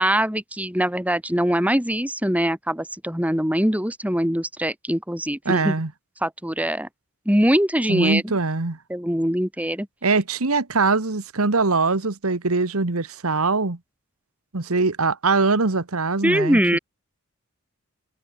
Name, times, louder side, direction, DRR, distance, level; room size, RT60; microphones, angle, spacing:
voice 1, 0.0-5.7 6.2-6.9 7.3-8.4 8.9-9.9 16.2-16.8, equal, 5° right, 4.3 m, -22 dB
voice 2, 5.4-5.9 7.9-8.8 10.0-13.8 14.5-16.8, right 3 dB, 80° right, 1.5 m, -22 dB
head